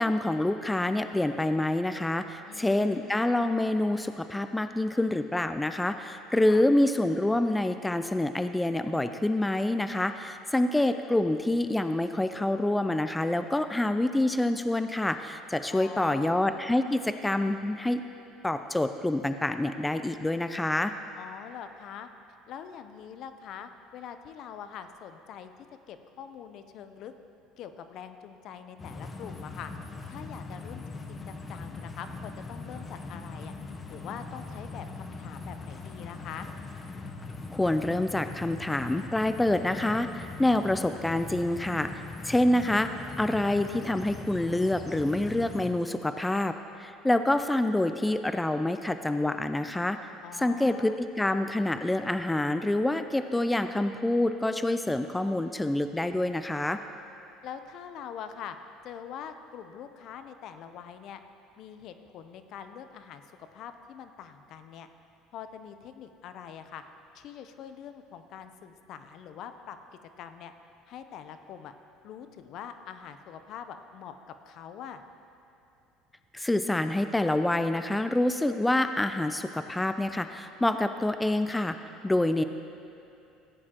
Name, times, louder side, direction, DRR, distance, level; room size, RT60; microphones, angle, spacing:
voice 1, 0.0-18.0 18.4-20.9 37.5-42.9 43.2-46.5 46.8-50.0 50.4-56.8 76.3-81.8 82.0-82.4, left 1 dB, 10° left, 9 dB, 0.4 m, -27 dB
voice 2, 2.4-3.2 6.5-6.7 15.7-16.4 21.1-22.1 22.5-25.5 25.9-27.1 27.6-29.7 30.1-33.5 33.9-36.5 50.2-51.0 57.4-58.6 58.8-61.2 61.6-64.9 65.3-66.8 67.1-69.8 70.2-70.5 70.9-71.7 72.0-74.1 74.4-75.0, left 8 dB, 60° left, 9 dB, 0.6 m, -44 dB
sound 1, 28.8-45.7, left 3 dB, 25° left, 0.9 m, -41 dB
16.0 x 9.7 x 2.9 m, 2.8 s
supercardioid pair, 95°, 0 cm